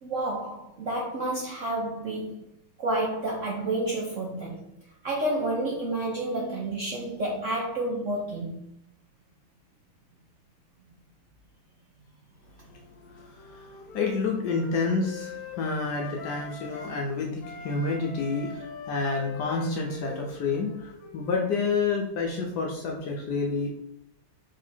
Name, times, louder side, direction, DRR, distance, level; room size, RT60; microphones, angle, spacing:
voice 1, 0.0-2.4 2.8-4.6 5.0-8.5, right 1 dB, 65° right, -3 dB, 0.7 m, -30 dB
Wind instrument woodwind instrument, 12.7-17.1 17.4-21.9, left 4 dB, 90° left, 1.5 m, -43 dB
voice 2, 13.9-23.7, left 4 dB, 70° left, 0 dB, 1.0 m, -29 dB
3.7 x 3.4 x 4.2 m, 0.78 s
omnidirectional pair, 2.2 m